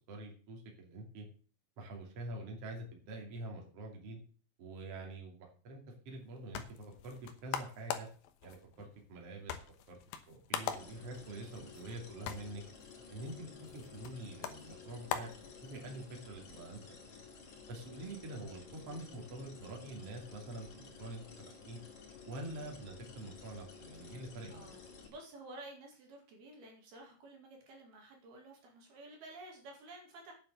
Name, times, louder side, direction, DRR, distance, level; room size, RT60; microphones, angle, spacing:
voice 1, 0.1-1.3 1.8-4.2 4.6-7.2 7.4-8.1 8.4-9.6 9.9-10.0 10.3-12.6 13.1-17.0 17.7-21.2 21.7-21.8 22.2-24.7, right 1 dB, 40° right, 1 dB, 3.1 m, -46 dB
sound 1, 6.1-16.1, left 9 dB, 70° left, 2.4 m, -44 dB
sound 2, 10.6-25.1, left 5 dB, 45° left, 3.5 m, -53 dB
voice 2, 24.5-30.3, right 2 dB, 60° right, 1 dB, 3.8 m, -52 dB
9.8 x 7.2 x 7.7 m, 0.41 s
omnidirectional pair, 5.3 m